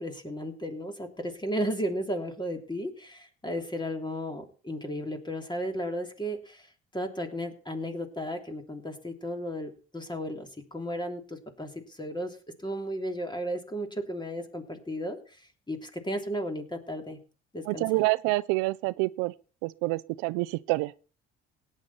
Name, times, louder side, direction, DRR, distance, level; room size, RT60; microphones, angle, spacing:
voice 1, 0.0-12.4 12.6-17.2 17.5-17.9, equal, 15° left, 3.2 m, -34 dB
voice 2, 17.7-19.3 19.6-20.9, right 22 dB, 85° right, 0.5 m, -27 dB
17.0 x 9.5 x 4.2 m
supercardioid pair, 60°, 30 cm